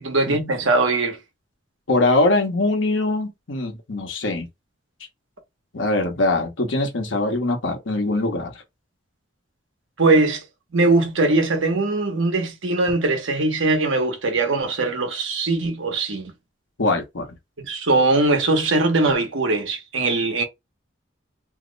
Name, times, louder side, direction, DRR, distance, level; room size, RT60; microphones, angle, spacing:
voice 1, 0.0-1.2 10.0-10.4 10.7-16.3 17.6-20.4, right 2 dB, 80° right, 1.0 m, -21 dB
voice 2, 1.9-4.5 5.7-8.6 16.8-17.3, left 2 dB, 75° left, 1.0 m, -22 dB
2.8 x 2.0 x 3.8 m
head